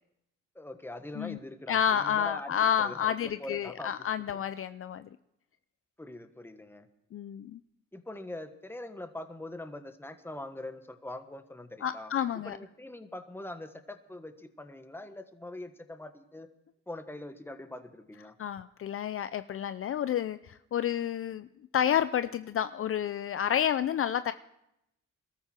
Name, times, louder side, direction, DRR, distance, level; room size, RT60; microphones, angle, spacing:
voice 1, 0.5-2.5 2.8-3.9 6.0-6.9 7.9-16.5 16.9-18.3, left 1 dB, 5° left, 9 dB, 1.4 m, -43 dB
voice 2, 1.7-5.1 7.1-7.6 11.8-12.6 18.4-21.5 21.7-24.3, left 9 dB, 45° left, 13 dB, 0.5 m, -30 dB
21.0 x 13.5 x 4.5 m, 0.82 s
cardioid pair, 90°, 30 cm